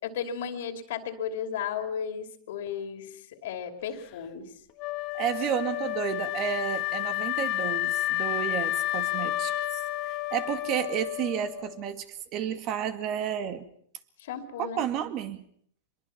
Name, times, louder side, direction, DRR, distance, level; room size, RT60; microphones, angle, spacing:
voice 1, 0.0-4.5 14.2-14.9, left 7 dB, 70° left, 7 dB, 2.8 m, -34 dB
Wind instrument woodwind instrument, 4.8-11.8, left 16 dB, 45° left, 1.2 m, -31 dB
voice 2, 5.1-9.8 10.1-12.1 12.3-13.7 14.6-15.4, right 9 dB, 40° right, 10 dB, 2.1 m, -31 dB
24.5 x 22.5 x 5.9 m, 0.63 s
supercardioid pair, 135°, 0 cm